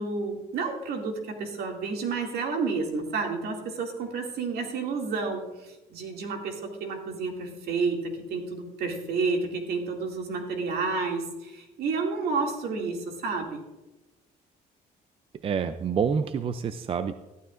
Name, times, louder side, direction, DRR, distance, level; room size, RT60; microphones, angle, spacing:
voice 1, 0.0-13.6, right 4 dB, 70° right, 2 dB, 2.3 m, -30 dB
voice 2, 15.4-17.1, right 6 dB, 35° right, 11 dB, 0.5 m, -27 dB
14.0 x 12.0 x 2.5 m, 1.0 s
cardioid pair, 110°, 17 cm